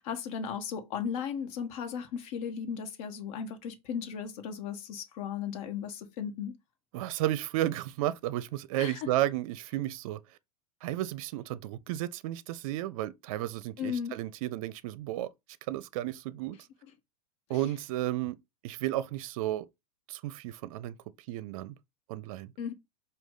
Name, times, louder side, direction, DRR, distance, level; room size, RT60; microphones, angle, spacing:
voice 1, 0.0-6.5 8.8-9.0 13.8-14.1 22.6-22.7, left 7 dB, 60° left, 1.1 m, -36 dB
voice 2, 6.9-10.4 10.8-15.3 15.7-16.7 17.5-18.4 18.6-19.7 20.1-21.0 21.3-21.8 22.1-22.5, right 14 dB, 60° right, 0.5 m, -33 dB
4.8 x 2.3 x 3.7 m
hypercardioid pair, 105°, 19 cm